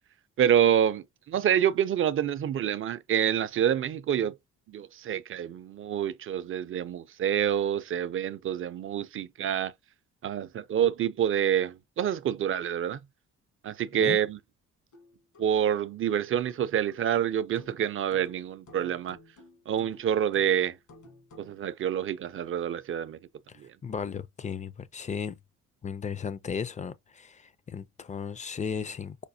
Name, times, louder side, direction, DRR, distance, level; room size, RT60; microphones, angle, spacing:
voice 1, 0.4-4.4 4.7-9.7 10.2-13.0 13.6-14.4 15.4-19.2 19.7-20.8 21.4-23.2 23.6-23.7, right 9 dB, 45° right, 0.4 m, -27 dB
sound 1, 14.9-21.6, left 2 dB, 70° left, 1.6 m, -54 dB
voice 2, 23.5-25.4 25.8-29.3, left 6 dB, 25° left, 0.4 m, -35 dB
5.0 x 2.1 x 2.7 m
cardioid pair, 90°, 30 cm